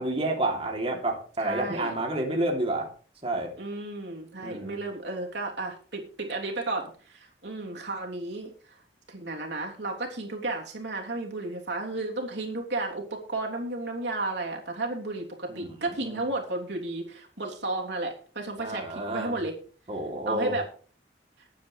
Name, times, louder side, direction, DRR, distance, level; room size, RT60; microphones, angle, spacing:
voice 1, 0.0-2.9 3.2-3.5 4.4-4.8 15.5-16.2 18.6-19.3 19.9-20.5, right 1 dB, 35° right, 1 dB, 3.1 m, -30 dB
voice 2, 1.4-1.9 3.6-8.8 9.1-19.5 20.3-20.6, right 2 dB, 80° right, 0 dB, 3.3 m, -33 dB
20.0 x 9.4 x 3.3 m, 0.42 s
head